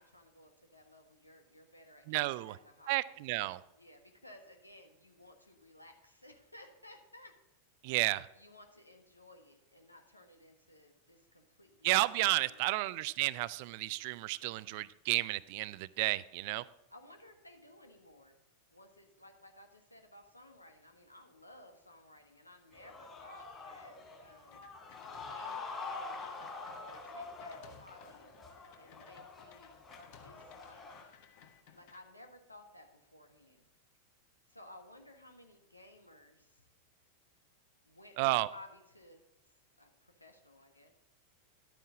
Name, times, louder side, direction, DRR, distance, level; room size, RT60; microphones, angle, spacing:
voice 1, 0.0-2.0 2.3-3.1 3.7-7.3 8.0-12.8 16.9-18.4 18.7-24.7 25.3-26.3 26.8-28.3 28.8-29.8 30.2-31.1 31.7-33.7 34.5-36.6 37.8-39.2 39.8-40.9, left 1 dB, 85° left, 1.5 m, -57 dB
voice 2, 2.1-2.6 2.9-3.6 7.8-8.3 11.8-16.6 38.2-38.5, right 20 dB, 45° right, 0.4 m, -32 dB
sound 1, 22.7-31.0, left 3 dB, 20° left, 3.3 m, -46 dB
sound 2, 24.5-25.6 25.9-32.0, left 8 dB, 50° left, 1.2 m, -59 dB
11.5 x 9.2 x 3.7 m
figure-of-eight pair, 90°, 0 cm